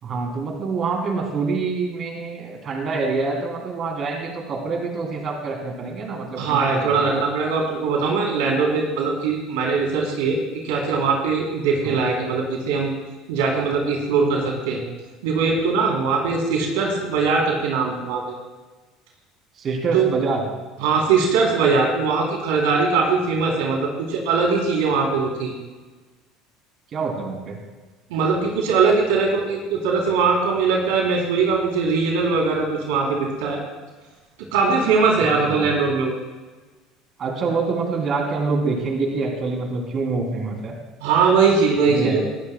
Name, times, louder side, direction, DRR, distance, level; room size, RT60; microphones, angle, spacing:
voice 1, 0.0-6.9 11.8-12.0 19.6-20.4 26.9-27.6 35.5-35.7 37.2-40.7 41.9-42.2, right 4 dB, 45° right, 0 dB, 2.9 m, -26 dB
voice 2, 6.4-10.4 10.6-12.9 13.3-14.8 15.2-18.3 19.9-20.1 20.8-25.5 28.1-33.6 34.5-36.2 41.0-42.2, right 4 dB, 85° right, -1 dB, 3.2 m, -21 dB
20.0 x 13.0 x 2.2 m, 1.2 s
supercardioid pair, 90°, 0 cm